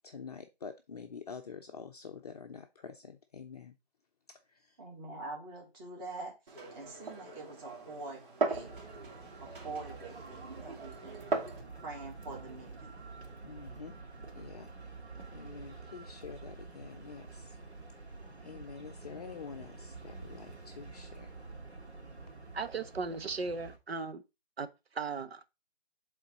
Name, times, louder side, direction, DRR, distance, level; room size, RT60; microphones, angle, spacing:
voice 1, 0.0-3.7 4.3-4.8 13.4-13.9 14.3-14.7 15.3-17.6 18.4-21.3, left 6 dB, 40° left, 0.6 m, -47 dB
voice 2, 4.8-8.8 9.4-11.2 11.8-13.0, right 3 dB, 25° right, 2.6 m, -45 dB
Glass, 6.5-11.6, right 3 dB, 55° right, 3.0 m, -38 dB
sound 1, 8.5-23.8, right 3 dB, 85° right, 2.1 m, -48 dB
voice 3, 22.5-24.2 24.6-25.5, right 4 dB, 70° right, 1.0 m, -37 dB
7.9 x 3.8 x 4.0 m
figure-of-eight pair, 150°, 32 cm